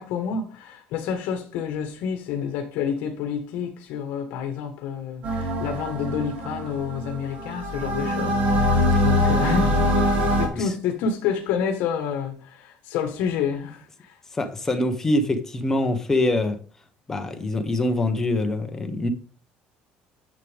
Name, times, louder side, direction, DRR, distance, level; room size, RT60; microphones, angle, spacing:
voice 1, 0.0-14.2, left 7 dB, 65° left, 1.5 m, -29 dB
sound 1, 5.2-10.5, left 1 dB, 40° right, 2.7 m, -23 dB
voice 2, 14.3-16.6 17.1-19.1, left 2 dB, 15° left, 1.1 m, -24 dB
10.5 x 7.6 x 3.5 m
cardioid pair, 165°, 3 cm